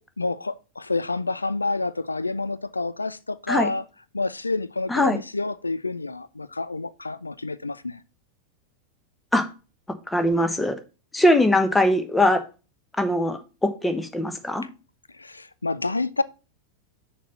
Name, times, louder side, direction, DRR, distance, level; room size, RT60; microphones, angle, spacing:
voice 1, 0.2-3.9 4.1-8.0 15.1-16.2, left 3 dB, 80° left, 0.3 m, -28 dB
voice 2, 10.1-10.7 11.1-12.4 13.0-14.6, left 1 dB, 10° left, 1.0 m, -21 dB
6.4 x 4.1 x 5.6 m
figure-of-eight pair, 90°, 0 cm